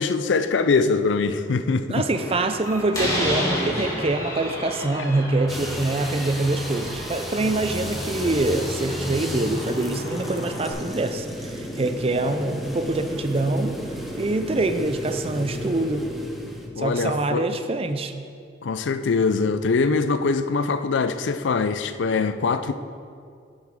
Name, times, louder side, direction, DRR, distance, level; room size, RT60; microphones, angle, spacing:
voice 1, 0.0-2.0 16.8-17.5 18.6-22.7, left 4 dB, 85° left, 11 dB, 0.4 m, -23 dB
voice 2, 1.9-13.8 14.2-16.1 16.8-18.1, right 2 dB, 30° right, 8 dB, 0.5 m, -25 dB
Slam, 2.1-10.7, equal, 20° left, 2.5 m, -32 dB
sound 1, 5.5-16.7, equal, ahead, 0.7 m, -33 dB
10.5 x 7.5 x 3.7 m, 2.3 s
head